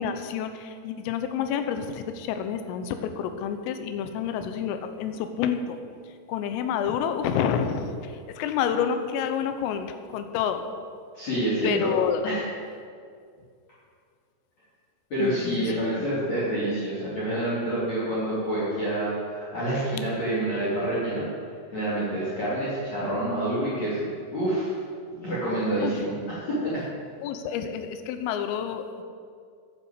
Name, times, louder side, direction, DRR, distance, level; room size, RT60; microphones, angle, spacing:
voice 1, 0.0-5.8 6.3-10.7 11.6-12.2 15.2-15.7 25.8-25.9 27.2-29.0, left 8 dB, 80° left, 8 dB, 3.5 m, -29 dB
voice 2, 11.1-11.9 12.2-12.4 15.1-21.2 21.7-24.7 25.1-26.8, right 1 dB, 35° left, -9 dB, 3.7 m, -27 dB
10.5 x 9.8 x 8.1 m, 2.2 s
omnidirectional pair, 5.9 m